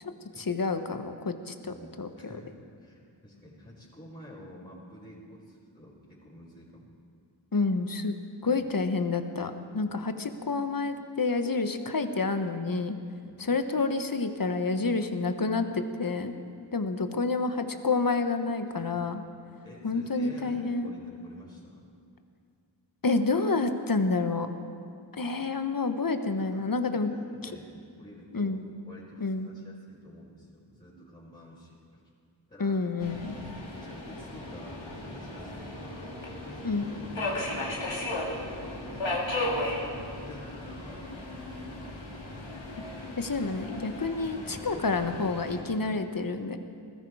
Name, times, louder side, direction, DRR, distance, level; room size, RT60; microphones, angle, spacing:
voice 1, 0.5-2.3 7.5-8.1 8.4-13.0 13.4-16.3 16.7-19.2 19.8-20.9 23.0-24.5 25.1-27.2 28.3-28.6 29.2-29.5 32.6-33.4 36.6-36.9 43.2-46.6, left 3 dB, 50° left, 8 dB, 1.2 m, -29 dB
voice 2, 1.6-6.9 8.6-8.7 13.2-13.4 18.7-19.0 19.6-21.8 26.4-26.6 26.9-28.6 28.8-32.0 32.5-32.8 33.9-36.0 36.5-37.4 38.8-41.7 44.4-44.8, equal, 20° left, -10 dB, 5.0 m, -50 dB
Subway metro underground, 33.0-45.6, left 1 dB, 90° left, 2.5 m, -36 dB
20.0 x 14.0 x 4.8 m, 2.4 s
cardioid pair, 40°, 45 cm